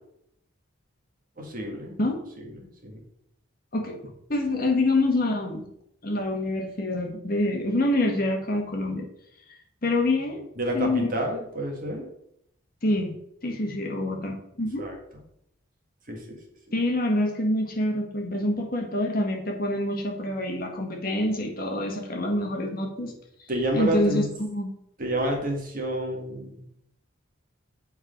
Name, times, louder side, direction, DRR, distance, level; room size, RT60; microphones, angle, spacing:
voice 1, 1.4-2.0 2.4-3.0 10.6-12.1 14.8-14.9 16.1-16.4 23.5-24.3 25.0-26.8, right 1 dB, 40° right, 1 dB, 1.7 m, -29 dB
voice 2, 4.3-5.6 6.0-9.0 9.8-10.4 10.7-11.1 12.8-13.1 13.4-14.9 16.7-23.1 23.7-24.7, left 1 dB, 45° left, 1 dB, 1.5 m, -26 dB
7.8 x 4.6 x 5.1 m, 0.75 s
head